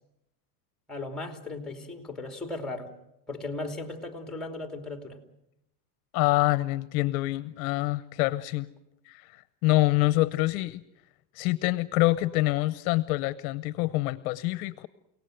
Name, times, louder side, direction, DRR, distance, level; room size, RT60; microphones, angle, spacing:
voice 1, 0.9-2.9 3.3-5.2, left 2 dB, ahead, 5 dB, 2.7 m, -36 dB
voice 2, 6.1-8.7 9.1-10.8 11.4-14.9, left 19 dB, 60° left, 16 dB, 0.9 m, -26 dB
29.5 x 18.0 x 7.8 m, 0.85 s
supercardioid pair, 140°, 48 cm